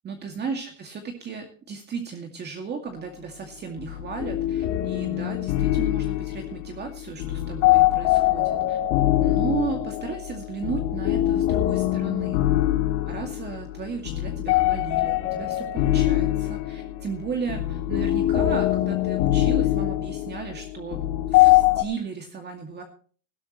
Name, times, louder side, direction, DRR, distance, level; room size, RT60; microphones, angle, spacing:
voice 1, 0.0-8.8 9.2-12.4 13.1-21.0 21.3-22.8, right 5 dB, 25° right, 3 dB, 2.2 m, -35 dB
sound 1, 3.8-21.8, left 15 dB, 65° left, 3.1 m, -23 dB
20.0 x 12.5 x 3.1 m, 0.42 s
supercardioid pair, 150°, 39 cm